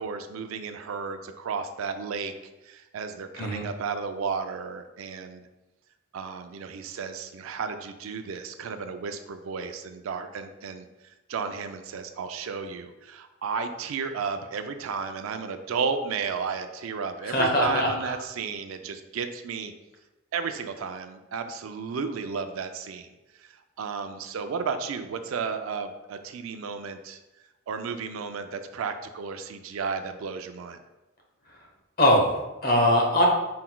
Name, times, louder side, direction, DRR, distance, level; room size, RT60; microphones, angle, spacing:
voice 1, 0.0-2.3 2.6-5.4 6.1-19.7 20.3-23.1 23.4-27.2 27.7-30.8, right 5 dB, 80° right, 8 dB, 0.4 m, -33 dB
voice 2, 17.2-17.9 32.0-33.2, left 1 dB, 45° left, -1 dB, 0.9 m, -21 dB
4.3 x 3.8 x 2.2 m, 1.0 s
head